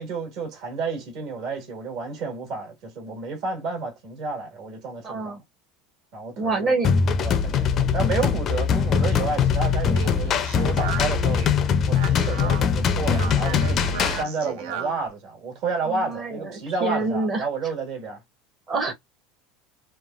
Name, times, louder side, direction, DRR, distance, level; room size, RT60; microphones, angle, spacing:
voice 1, 0.0-5.4 6.1-6.8 7.2-11.4 11.9-18.2, right 4 dB, 55° right, 1.5 m, -31 dB
voice 2, 5.0-5.4 6.4-6.9 15.9-16.5 16.8-17.4 18.7-18.9, right 3 dB, 25° right, 0.8 m, -26 dB
sound 1, 6.8-14.2, left 6 dB, 30° left, 0.4 m, -22 dB
Speech, 9.7-15.1, right 7 dB, 85° right, 0.8 m, -36 dB
3.1 x 2.2 x 2.4 m
cardioid pair, 160°, 0 cm